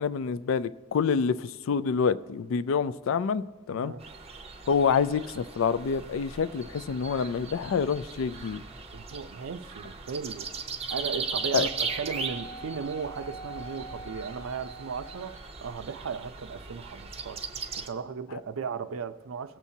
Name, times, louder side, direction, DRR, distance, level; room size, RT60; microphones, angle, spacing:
voice 1, 0.0-3.9 4.7-8.6 11.5-11.7, left 6 dB, 75° left, 0.4 m, -27 dB
voice 2, 3.7-4.0 8.9-10.5 10.9-17.4 17.8-19.6, right 5 dB, 85° right, 0.5 m, -36 dB
sound 1, 4.0-17.9, right 5 dB, 30° right, 0.6 m, -38 dB
Wind instrument woodwind instrument, 11.3-15.5, right 2 dB, 45° left, 0.7 m, -45 dB
18.0 x 7.1 x 2.7 m
head